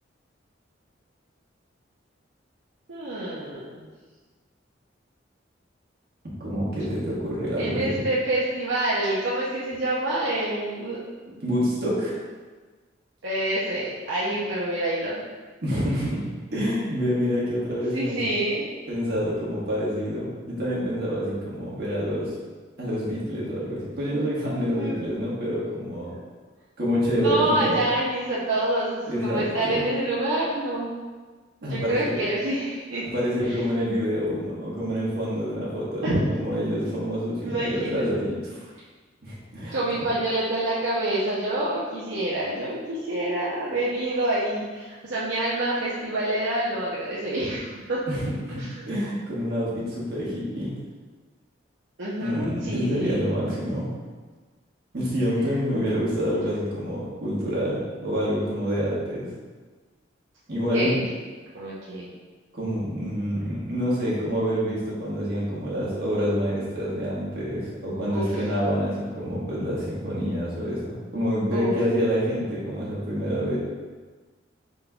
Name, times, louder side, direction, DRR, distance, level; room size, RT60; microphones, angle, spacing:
voice 1, 2.9-3.9 7.6-11.0 11.3-11.4 13.2-15.2 17.9-18.7 24.7-25.1 26.1-26.2 27.2-30.9 31.6-33.0 33.5-33.6 36.0-36.2 37.4-38.0 39.7-48.1 48.6-48.8 52.0-53.2 55.5-55.6 60.7-60.9 61.5-62.1 68.1-68.3 71.5-71.7, right 1 dB, 80° right, -8 dB, 0.7 m, -27 dB
voice 2, 6.4-8.0 11.4-12.2 15.6-16.2 16.5-18.2 18.9-22.3 22.8-26.1 26.8-27.8 29.1-29.8 31.6-32.2 33.1-38.7 39.2-39.7 48.1-50.7 52.2-53.9 54.9-59.3 60.5-61.0 62.5-73.6, equal, 55° right, -7 dB, 1.4 m, -27 dB
5.2 x 3.8 x 2.3 m, 1.4 s
head